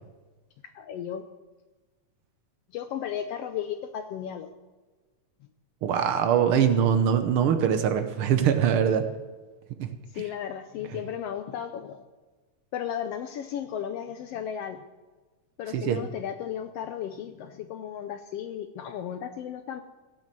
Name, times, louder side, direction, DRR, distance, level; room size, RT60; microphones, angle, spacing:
voice 1, 0.7-1.2 2.7-4.5 10.1-12.0 12.7-14.8 15.6-19.8, left 9 dB, 75° left, 8 dB, 1.4 m, -34 dB
voice 2, 5.8-9.1 9.8-9.9 15.7-16.1, right 8 dB, 70° right, 9 dB, 1.3 m, -23 dB
16.5 x 7.4 x 7.6 m, 1.3 s
omnidirectional pair, 3.5 m